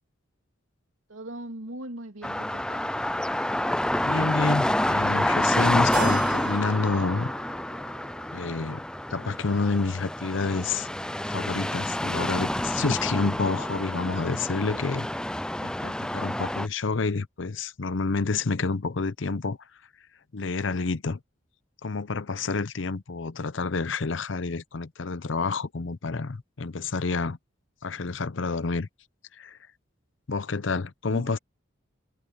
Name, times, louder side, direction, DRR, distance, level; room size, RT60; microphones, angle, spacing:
voice 1, 1.1-2.9 31.1-31.4, right 1 dB, 90° right, 3.1 m, -40 dB
sound 1, 2.2-16.7, left 1 dB, 5° left, 0.4 m, -28 dB
voice 2, 4.0-7.3 8.3-8.8 9.1-10.9 11.2-15.1 15.6-19.6 20.3-21.2 21.8-27.4 27.8-28.9 29.3-29.6 30.3-31.4, left 4 dB, 70° left, 0.7 m, -29 dB
Keyboard (musical), 5.9-10.4, right 8 dB, 45° right, 1.8 m, -41 dB
head